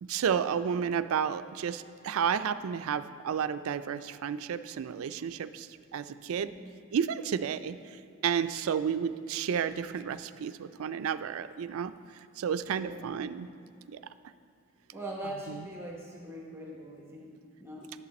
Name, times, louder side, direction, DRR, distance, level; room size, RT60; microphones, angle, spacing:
voice 1, 0.0-6.5 6.9-7.8 8.2-11.9 12.4-13.5 13.9-14.0 15.5-15.6, right 7 dB, 80° right, 12 dB, 0.3 m, -31 dB
voice 2, 6.3-6.7 12.6-13.2 14.9-17.9, right 1 dB, 10° right, -2 dB, 0.9 m, -42 dB
11.0 x 7.1 x 4.2 m, 2.5 s
head